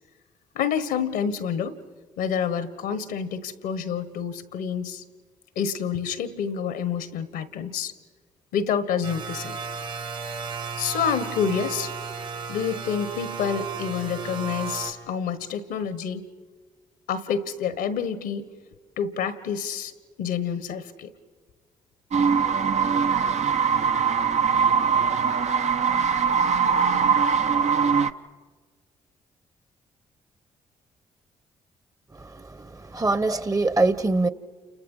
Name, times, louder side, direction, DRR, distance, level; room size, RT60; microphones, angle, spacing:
voice 1, 0.5-1.7 2.2-5.0 5.5-7.9 8.5-9.6 10.8-11.9 12.5-16.3 17.1-18.5 19.0-19.9 20.2-21.1, left 7 dB, 75° left, 1.3 m, -28 dB
sound 1, 9.0-14.9, right 5 dB, 80° right, 4.2 m, -34 dB
sound 2, 22.1-28.1, right 6 dB, 45° right, 0.9 m, -22 dB
voice 2, 32.1-34.3, right 2 dB, 20° right, 1.2 m, -24 dB
29.5 x 28.0 x 5.6 m
hypercardioid pair, 45°, 16 cm